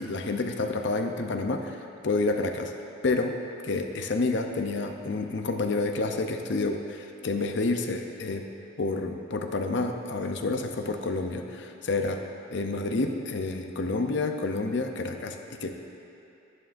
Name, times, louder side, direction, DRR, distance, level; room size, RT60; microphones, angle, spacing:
voice 1, 0.0-1.8 2.0-2.7 3.0-3.4 3.6-8.5 8.8-12.3 12.5-15.7, left 3 dB, 60° left, 5 dB, 0.6 m, -29 dB
11.0 x 11.0 x 2.6 m, 2.8 s
head